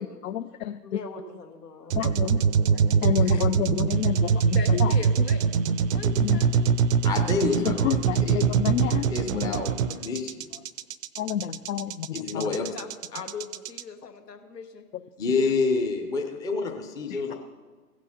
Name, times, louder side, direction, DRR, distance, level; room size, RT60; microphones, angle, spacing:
voice 1, 0.2-0.8 2.0-2.4 3.0-5.0 6.2-6.4 7.6-9.7 11.2-12.6 17.1-17.3, left 11 dB, 60° left, 10 dB, 0.5 m, -30 dB
voice 2, 0.8-1.9 2.2-3.5 4.5-5.5 5.8-6.7 12.2-14.8 15.3-15.5, left 4 dB, 75° left, 5 dB, 1.5 m, -40 dB
sound 1, 1.9-13.8, right 6 dB, 55° right, 0.6 m, -23 dB
voice 3, 7.0-8.4 9.1-9.7 10.0-10.5 12.1-12.7 15.2-17.3, left 4 dB, 10° left, 3 dB, 0.5 m, -28 dB
15.5 x 6.1 x 5.7 m, 1.4 s
figure-of-eight pair, 110°, 48 cm